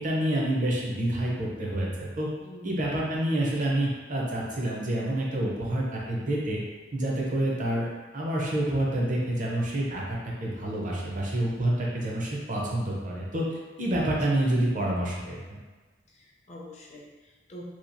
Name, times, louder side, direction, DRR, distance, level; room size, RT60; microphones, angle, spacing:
voice 1, 0.0-2.3 2.6-6.6 6.9-7.9 8.1-15.6, right 1 dB, 45° right, -3 dB, 0.6 m, -28 dB
voice 2, 16.1-17.6, equal, 35° left, -3 dB, 0.5 m, -46 dB
2.9 x 2.3 x 2.5 m, 1.3 s
head